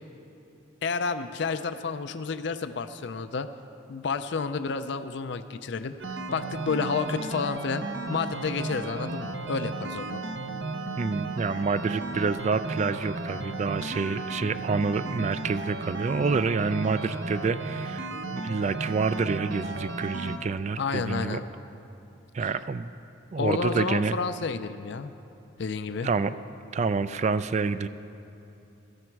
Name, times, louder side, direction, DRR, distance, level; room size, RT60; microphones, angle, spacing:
voice 1, 0.8-3.5 3.9-10.2 13.8-14.0 20.8-21.4 23.4-25.1 25.6-26.1, left 4 dB, 60° left, 10 dB, 0.4 m, -30 dB
sound 1, 6.0-20.4, right 3 dB, 65° right, 0.8 m, -34 dB
voice 2, 11.0-21.4 22.3-22.9 23.3-24.2 26.0-26.3 26.7-27.9, right 4 dB, 35° right, 13 dB, 0.3 m, -28 dB
16.0 x 13.0 x 4.6 m, 2.8 s
head